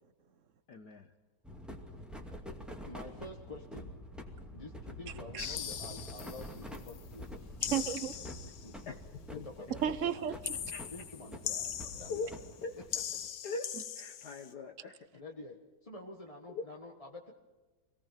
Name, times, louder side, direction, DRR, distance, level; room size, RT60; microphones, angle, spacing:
voice 1, 0.7-1.1 8.9-9.0 9.3-9.5 10.7-10.8 12.1-12.3 12.6-12.7 13.4-14.9 16.5-16.6, left 4 dB, 55° left, 5 dB, 1.5 m, -40 dB
sound 1, 1.4-13.3, left 1 dB, ahead, 2.1 m, -47 dB
voice 2, 2.8-3.9 4.4-7.8 8.6-8.9 9.3-10.2 10.9-12.8 13.2-13.4 15.1-17.3, left 2 dB, 20° left, 1 dB, 1.3 m, -49 dB
sound 2, 5.4-7.0 7.6-8.8 10.4-12.6 12.9-14.5, left 10 dB, 90° left, 2.1 m, -40 dB
voice 3, 7.7-8.1 9.8-10.6 13.7-13.8, right 9 dB, 55° right, 14 dB, 0.8 m, -33 dB
25.0 x 18.5 x 5.8 m, 1.2 s
omnidirectional pair, 2.3 m